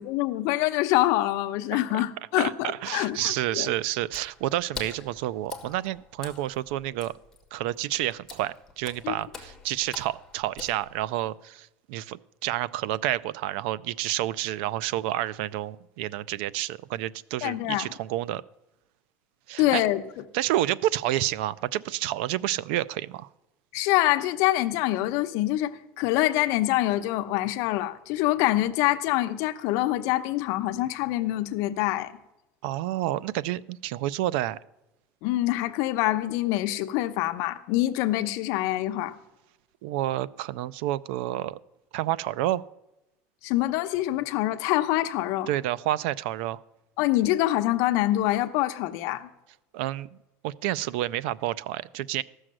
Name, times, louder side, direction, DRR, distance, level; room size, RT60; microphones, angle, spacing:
voice 1, 0.0-3.7 9.0-9.1 17.4-17.9 19.6-20.0 23.7-32.1 35.2-39.1 43.4-45.5 47.0-49.3, left 15 dB, 65° left, 0.8 m, -25 dB
voice 2, 1.7-2.0 2.4-7.1 7.5-18.4 19.5-19.8 20.3-23.3 32.6-34.6 39.8-41.6 41.9-42.6 45.5-46.6 49.7-50.2 50.4-52.2, right 14 dB, 90° right, 0.4 m, -29 dB
Water / Splash splatter, 4.0-11.3, left 4 dB, 5° left, 1.4 m, -45 dB
14.5 x 6.3 x 7.5 m
cardioid pair, 175°, 6 cm